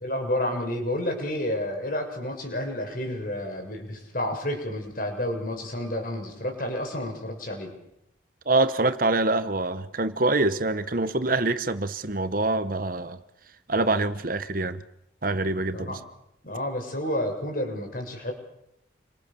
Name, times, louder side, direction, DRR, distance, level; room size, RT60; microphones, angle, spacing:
voice 1, 0.0-7.7 15.7-16.0 16.4-18.3, left 1 dB, 45° left, 6.8 m, -30 dB
voice 2, 8.5-13.2 13.7-14.8 15.2-16.0, right 2 dB, 45° right, 1.2 m, -25 dB
29.5 x 24.5 x 7.0 m
head